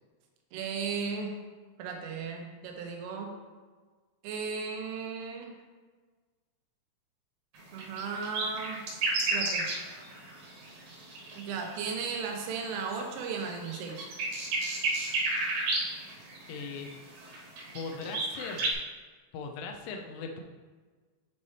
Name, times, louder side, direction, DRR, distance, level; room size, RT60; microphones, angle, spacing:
voice 1, 0.5-1.4 1.8-3.3 4.2-5.6 7.7-8.8 9.3-9.7 11.4-14.1, right 5 dB, 90° right, 2 dB, 3.5 m, -35 dB
sound 1, 7.5-12.6 13.1-18.7, right 2 dB, 65° right, 2.3 m, -32 dB
voice 2, 16.5-16.9 17.7-18.7 19.3-20.4, left 4 dB, 85° left, 2 dB, 2.4 m, -39 dB
10.5 x 4.3 x 3.2 m, 1.4 s
omnidirectional pair, 5.6 m